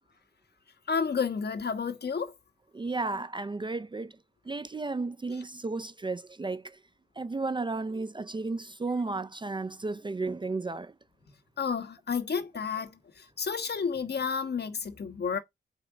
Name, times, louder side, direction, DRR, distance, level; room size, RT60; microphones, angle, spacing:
voice 1, 0.9-2.3 11.6-12.9 13.4-15.4, left 6 dB, 55° left, 1.4 m, -30 dB
voice 2, 2.7-4.1 4.5-6.8 7.2-10.9, right 3 dB, 25° right, 0.5 m, -33 dB
6.3 x 5.0 x 6.0 m
wide cardioid pair, 125°, 20 cm